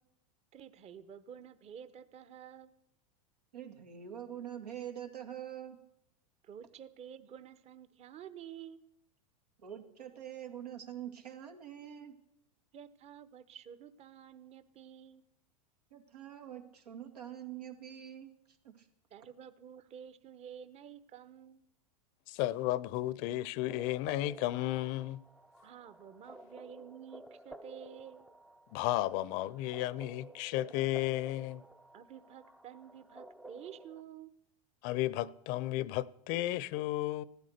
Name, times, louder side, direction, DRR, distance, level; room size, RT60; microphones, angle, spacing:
voice 1, 0.5-2.7 6.4-8.8 12.7-15.2 19.1-21.6 25.6-28.3 31.9-34.3, right 9 dB, 35° right, 1.0 m, -50 dB
voice 2, 3.5-5.8 9.6-12.2 15.9-18.3 18.6-18.9, right 10 dB, 90° right, 2.3 m, -45 dB
voice 3, 22.3-25.2 28.7-31.6 34.8-37.2, left 15 dB, 50° left, 0.7 m, -33 dB
sound 1, 23.7-34.0, right 2 dB, ahead, 0.5 m, -53 dB
15.5 x 12.5 x 6.6 m
hypercardioid pair, 110°, 20 cm